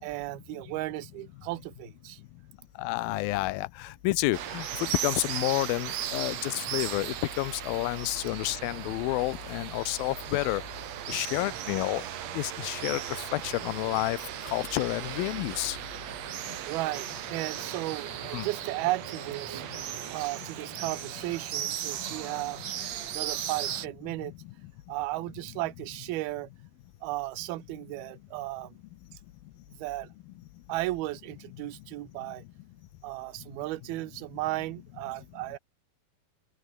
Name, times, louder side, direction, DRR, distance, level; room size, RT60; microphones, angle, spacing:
voice 1, 0.0-2.2 16.7-19.6 20.1-22.6 23.0-24.3 24.9-26.5 27.0-28.7 29.8-30.1 30.7-32.4 33.0-35.6, right 18 dB, 75° right, 2.8 m, -35 dB
voice 2, 2.8-10.6 11.1-12.0 12.3-14.2 14.4-15.8 18.3-18.5 24.2-24.3, left 19 dB, 75° left, 2.5 m, -30 dB
sound 1, 4.3-23.9, right 11 dB, 60° right, 2.0 m, -37 dB
open air
omnidirectional pair, 4.6 m